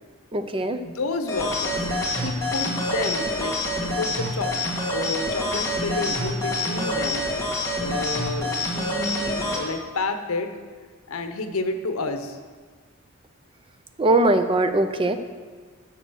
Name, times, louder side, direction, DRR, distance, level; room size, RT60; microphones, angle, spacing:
voice 1, 0.3-0.8 2.2-2.3 14.0-15.2, right 2 dB, 25° right, 9 dB, 0.5 m, -21 dB
voice 2, 0.8-4.5 4.9-7.3 7.8-10.5 11.1-12.4, left 3 dB, 80° left, 7 dB, 0.9 m, -30 dB
sound 1, 1.3-9.6, left 1 dB, 15° left, 1.9 m, -27 dB
11.0 x 6.4 x 6.3 m, 1.5 s
head